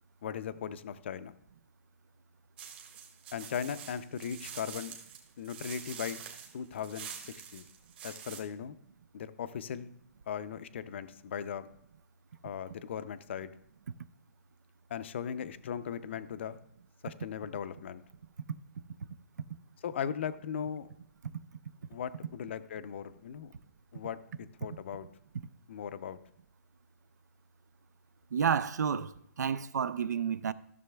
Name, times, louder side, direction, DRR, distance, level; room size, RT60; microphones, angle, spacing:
voice 1, 0.2-1.3 3.3-4.9 5.4-6.2 6.5-7.7 8.0-8.7 9.1-9.9 10.3-11.7 12.4-13.5 14.9-16.6 17.0-18.0 19.8-20.9 21.9-23.5 23.9-25.1 25.7-26.2, left 8 dB, 45° left, 0.4 m, -38 dB
sound 1, 2.6-8.4, right 8 dB, 35° right, 1.5 m, -46 dB
voice 2, 28.3-29.1 29.4-30.5, right 7 dB, 85° right, 0.5 m, -30 dB
14.5 x 6.7 x 2.2 m
hypercardioid pair, 165°, 9 cm